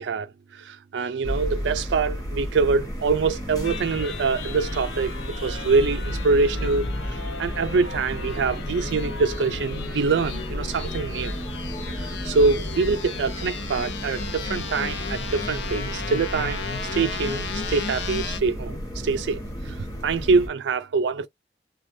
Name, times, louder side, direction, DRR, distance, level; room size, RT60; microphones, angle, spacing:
voice 1, 0.0-11.4 11.9-16.7 16.9-21.3, right 4 dB, 90° right, 0.4 m, -25 dB
sound 1, 1.2-20.5, equal, 20° left, 1.2 m, -33 dB
sound 2, 3.6-18.4, left 4 dB, 90° left, 0.7 m, -35 dB
3.2 x 2.2 x 2.6 m
head